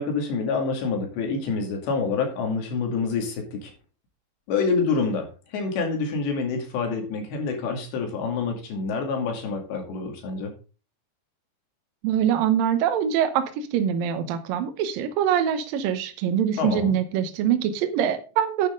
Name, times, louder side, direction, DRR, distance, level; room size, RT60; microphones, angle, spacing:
voice 1, 0.0-3.7 4.5-5.3 5.5-10.5 16.6-16.9, left 4 dB, 75° left, 3 dB, 4.6 m, -27 dB
voice 2, 12.0-18.7, right 9 dB, 75° right, 8 dB, 2.2 m, -24 dB
10.5 x 9.5 x 3.8 m, 0.34 s
omnidirectional pair, 5.2 m